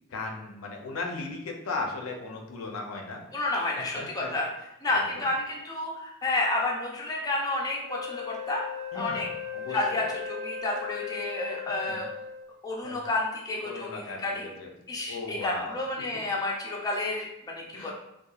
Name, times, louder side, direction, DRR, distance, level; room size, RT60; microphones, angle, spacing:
voice 1, 0.1-3.2 3.8-4.4 4.9-5.3 8.9-10.0 11.9-12.0 12.8-13.0 13.6-14.7 15.1-15.7 17.7-17.9, left 3 dB, 80° left, 2 dB, 0.5 m, -37 dB
voice 2, 3.3-4.5 4.8-8.6 8.9-9.3 9.7-12.1 12.6-14.4 14.9-17.9, left 2 dB, 20° left, -2 dB, 0.4 m, -30 dB
Wind instrument woodwind instrument, 7.9-12.6, left 7 dB, 75° right, 0.4 m, -37 dB
2.8 x 2.2 x 2.3 m, 0.85 s
head